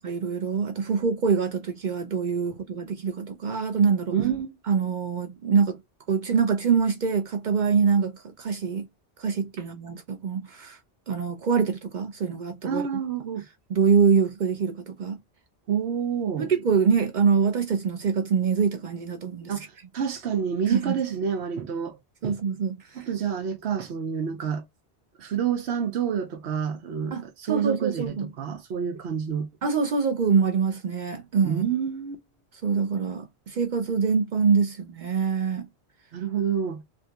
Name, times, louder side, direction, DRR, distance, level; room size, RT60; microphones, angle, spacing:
voice 1, 0.0-4.1 4.7-5.8 6.1-8.9 9.2-10.8 11.1-13.0 13.7-15.2 16.4-19.5 20.7-20.9 22.2-23.0 27.1-27.2 27.5-28.3 29.6-31.6 32.6-35.7, right 6 dB, 55° right, 0.6 m, -24 dB
voice 2, 4.1-4.6 12.6-13.5 15.7-16.5 19.5-22.0 22.2-22.4 22.9-24.6 25.2-29.5 31.4-32.2 36.1-36.8, right 7 dB, 90° right, 1.0 m, -28 dB
3.5 x 2.7 x 2.3 m
omnidirectional pair, 1.1 m